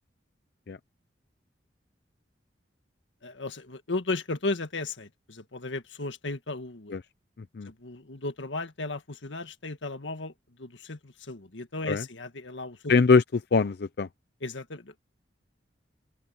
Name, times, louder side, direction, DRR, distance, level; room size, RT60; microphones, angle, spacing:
voice 1, 3.2-7.0 7.7-10.3 10.6-12.9 14.4-15.0, left 2 dB, 90° left, 1.8 m, -35 dB
voice 2, 12.9-13.2 13.5-14.1, left 4 dB, 60° left, 0.5 m, -22 dB
open air
head